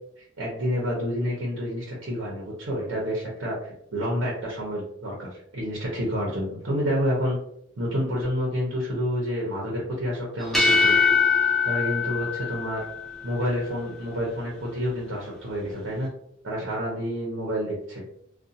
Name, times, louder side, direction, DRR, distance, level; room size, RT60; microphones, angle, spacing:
voice 1, 0.2-7.4 7.8-11.0 11.6-12.8 13.2-16.1 16.4-18.0, equal, 85° right, -3 dB, 0.8 m, -29 dB
sound 1, 10.4-13.2, left 5 dB, ahead, 0.5 m, -22 dB
2.4 x 2.3 x 2.7 m, 0.71 s
head